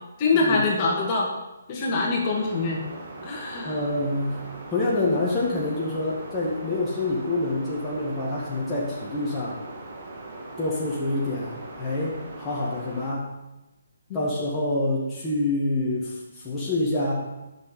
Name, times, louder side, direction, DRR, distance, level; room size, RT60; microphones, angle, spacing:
voice 1, 0.2-1.3 1.7-2.8 3.2-3.8 14.1-14.2, left 3 dB, 30° left, -2 dB, 2.1 m, -24 dB
sound 1, 2.2-13.1, right 2 dB, 45° right, 2.1 m, -40 dB
voice 2, 3.6-4.4 4.7-9.6 10.6-13.3 14.1-17.1, left 2 dB, 10° left, -7 dB, 1.8 m, -27 dB
9.6 x 6.4 x 5.5 m, 1.0 s
figure-of-eight pair, 135°, 0 cm